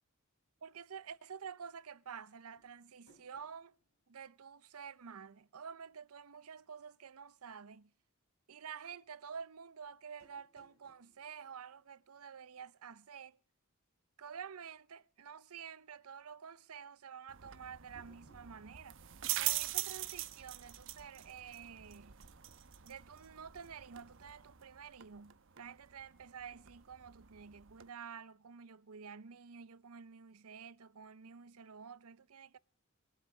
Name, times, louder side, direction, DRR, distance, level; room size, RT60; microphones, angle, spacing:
voice 1, 0.6-3.7 4.1-7.9 8.5-13.4 14.2-19.0 19.4-22.2 22.8-32.6, right 7 dB, 80° right, 0.7 m, -50 dB
sound 1, 2.6-5.2 5.5-5.6 10.2-12.7 17.9-18.8, right 2 dB, 70° left, 3.4 m, -70 dB
sound 2, 17.3-27.9, right 14 dB, 60° right, 1.0 m, -43 dB
22.5 x 7.8 x 7.2 m
head